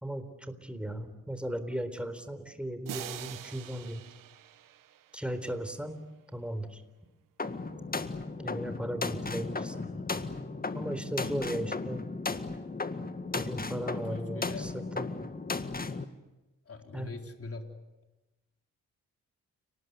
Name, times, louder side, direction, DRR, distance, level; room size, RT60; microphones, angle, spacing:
voice 1, 0.0-4.0 5.1-6.0 6.3-6.8 8.4-9.8 10.7-12.0 13.3-15.1 16.9-17.1, right 1 dB, 5° right, 10 dB, 4.0 m, -36 dB
sound 1, 2.9-5.7, right 12 dB, 90° right, 1.2 m, -45 dB
sound 2, 7.4-16.0, left 3 dB, 30° left, 1.9 m, -35 dB
voice 2, 9.7-10.1 13.9-14.7 16.7-17.7, left 3 dB, 45° left, 4 dB, 3.9 m, -43 dB
30.0 x 19.5 x 9.5 m, 1.0 s
cardioid pair, 65°, 32 cm